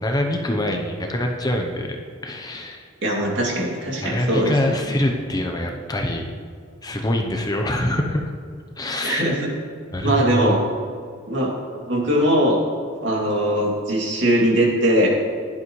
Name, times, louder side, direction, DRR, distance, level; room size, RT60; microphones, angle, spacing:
voice 1, 0.0-2.0 2.2-2.9 3.2-3.4 4.0-6.3 6.8-8.3 8.8-9.2 9.9-10.5, left 1 dB, 20° left, 2 dB, 0.8 m, -24 dB
voice 2, 3.0-4.9 9.0-9.5 10.0-10.6 11.3-11.5 11.9-12.6 13.0-15.1, right 1 dB, 60° right, -2 dB, 2.6 m, -20 dB
16.0 x 11.0 x 3.2 m, 2.1 s
head